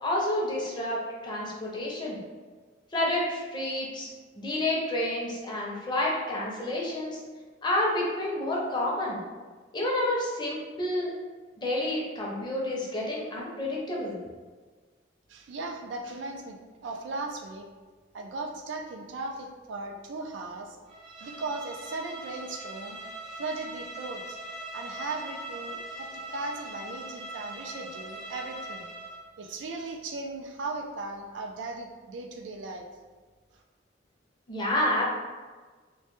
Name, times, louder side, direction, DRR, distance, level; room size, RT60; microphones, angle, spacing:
voice 1, 0.0-2.2 2.9-4.1 4.4-7.2 7.6-9.2 9.7-11.1 11.6-14.2 34.5-35.0, left 1 dB, 25° left, -4 dB, 0.5 m, -29 dB
voice 2, 15.3-16.6 16.8-17.7 18.1-20.8 21.2-23.0 23.4-24.4 24.7-28.9 29.4-32.9 33.5-33.6, right 3 dB, 80° right, 3 dB, 0.4 m, -37 dB
Bowed string instrument, 20.9-29.3, right 1 dB, 30° right, 0.6 m, -41 dB
2.2 x 2.1 x 2.9 m, 1.4 s
head